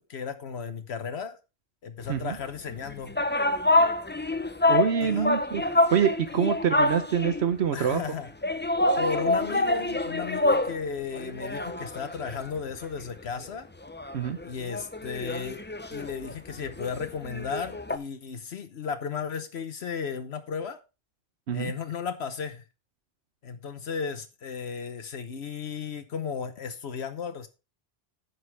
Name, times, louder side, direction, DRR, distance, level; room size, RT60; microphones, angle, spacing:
voice 1, 0.1-1.4 1.8-3.2 5.0-5.3 6.3-6.5 7.7-8.3 9.0-13.7 14.4-15.6 15.9-20.8 21.5-22.6 23.4-27.5, left 6 dB, 80° left, 1.2 m, -34 dB
sound 1, 2.7-7.5 8.4-10.8 11.1-13.0 13.4-13.5 13.8-18.0, left 2 dB, 15° left, 0.5 m, -27 dB
voice 2, 4.7-5.6 5.9-8.0 14.1-14.4 21.5-21.7, right 8 dB, 80° right, 1.1 m, -25 dB
11.0 x 8.1 x 3.4 m
omnidirectional pair, 1.1 m